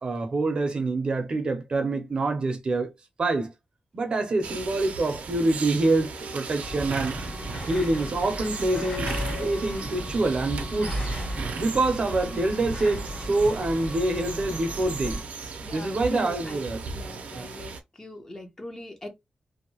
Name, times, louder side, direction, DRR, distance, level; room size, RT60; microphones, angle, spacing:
voice 1, 0.0-2.9 3.2-3.5 3.9-7.2 7.7-11.0 11.6-15.2 15.7-16.8 17.3-17.5, right 2 dB, 45° right, 0.6 m, -26 dB
sound 1, 4.4-17.8, right 4 dB, 85° right, 0.5 m, -37 dB
sound 2, 5.9-9.7, left 8 dB, 65° left, 1.3 m, -43 dB
sound 3, 6.6-15.2, equal, 40° left, 1.5 m, -35 dB
voice 2, 15.6-17.7 18.0-19.1, left 2 dB, 25° left, 0.6 m, -41 dB
2.6 x 2.1 x 2.8 m
wide cardioid pair, 160°, 2 cm